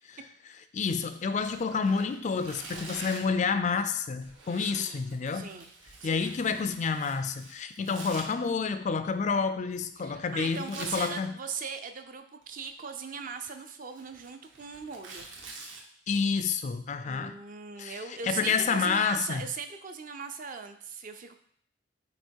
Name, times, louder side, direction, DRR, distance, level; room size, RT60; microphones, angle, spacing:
voice 1, 0.7-5.5 6.0-11.3 16.1-17.3 17.8-18.0 18.2-19.4, left 5 dB, 35° left, 10 dB, 0.3 m, -29 dB
Tearing, 1.3-3.4 4.2-8.2 10.4-11.1 12.4-12.9 13.3-15.8, right 3 dB, 70° right, 1.1 m, -46 dB
voice 2, 4.6-5.0 5.3-5.7 6.0-6.3 10.0-15.3 17.0-21.3, right 6 dB, 40° right, 7 dB, 0.5 m, -39 dB
8.0 x 2.9 x 4.5 m, 0.64 s
head